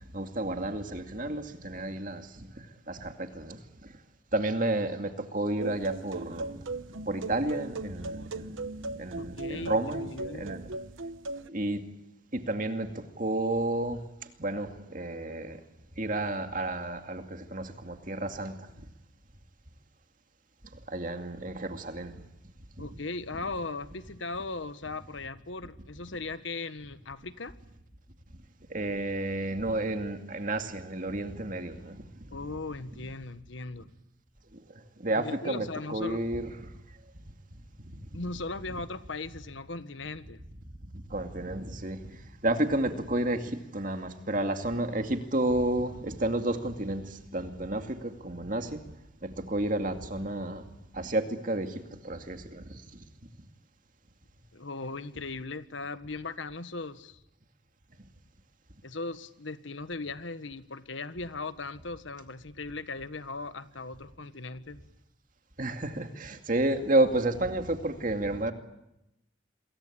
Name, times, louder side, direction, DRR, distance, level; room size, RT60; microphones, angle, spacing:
voice 1, 0.1-2.5 2.9-3.6 4.3-8.5 8.9-10.6 11.5-11.8 12.3-12.9 13.2-14.0 14.4-15.6 16.0-18.7 20.9-22.1 22.8-22.9 28.7-32.0 35.0-36.5 37.8-37.9 41.1-42.0 42.4-48.8 49.2-50.6 50.9-52.8 65.6-68.5, right 1 dB, 40° right, 2.3 m, -31 dB
sound 1, 5.6-11.5, right 2 dB, 80° right, 1.1 m, -38 dB
voice 2, 9.2-10.5 22.8-27.5 32.3-33.9 35.2-36.3 38.1-40.4 54.5-57.2 58.8-64.8, left 3 dB, 70° left, 1.4 m, -38 dB
27.5 x 22.5 x 8.7 m
head